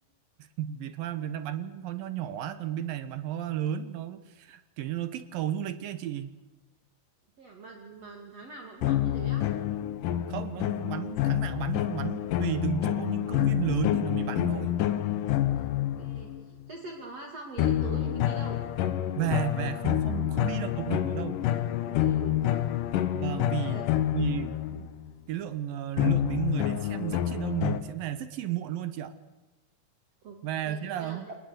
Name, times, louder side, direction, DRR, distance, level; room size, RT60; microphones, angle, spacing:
voice 1, 0.4-6.3 10.3-14.8 19.2-21.4 23.1-23.8 24.1-24.9 25.3-29.1 30.4-31.3, right 11 dB, 70° right, 12 dB, 2.3 m, -33 dB
voice 2, 7.4-9.4 15.5-18.6 21.8-22.6 23.3-23.9 30.2-30.4 30.6-31.3, right 3 dB, 40° right, 1 dB, 2.9 m, -44 dB
sound 1, 8.8-16.4 17.6-25.1 26.0-27.8, left 12 dB, 75° left, 2.0 m, -28 dB
28.5 x 19.5 x 8.0 m, 1.1 s
omnidirectional pair, 5.0 m